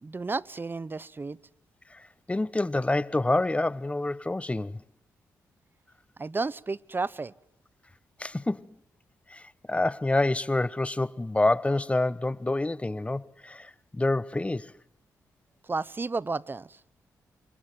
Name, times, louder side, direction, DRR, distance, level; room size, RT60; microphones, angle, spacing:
voice 1, 0.0-1.4 6.2-7.3 15.7-16.8, right 3 dB, 30° right, 0.9 m, -32 dB
voice 2, 1.9-4.8 8.2-8.7 9.3-14.7, left 2 dB, 20° left, 0.9 m, -27 dB
28.5 x 23.0 x 7.6 m
cardioid pair, 55°, 7 cm